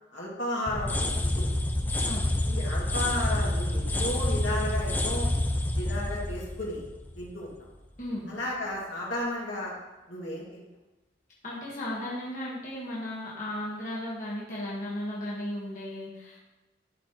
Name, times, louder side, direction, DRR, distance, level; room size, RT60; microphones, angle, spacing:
voice 1, 0.1-1.5 2.5-5.3 5.8-6.9 7.1-7.5 8.3-9.7 10.1-10.6, left 1 dB, 75° left, -5 dB, 2.3 m, -33 dB
sound 1, 0.7-7.5, left 1 dB, 10° left, 0.3 m, -28 dB
voice 2, 11.4-16.4, left 1 dB, 40° left, -7 dB, 1.5 m, -35 dB
12.0 x 4.2 x 3.0 m, 1.1 s
head